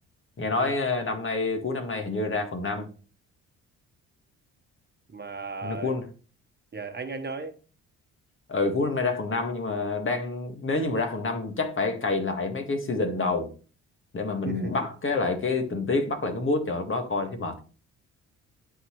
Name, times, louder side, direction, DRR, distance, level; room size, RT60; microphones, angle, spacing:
voice 1, 0.4-2.9 5.6-6.1 8.5-13.5 14.1-17.6, left 3 dB, 40° left, 1.9 m, -28 dB
voice 2, 5.1-5.9 6.7-7.5 14.4-14.7, right 4 dB, 30° right, 1.3 m, -35 dB
11.5 x 4.1 x 3.2 m
supercardioid pair, 60°, 33 cm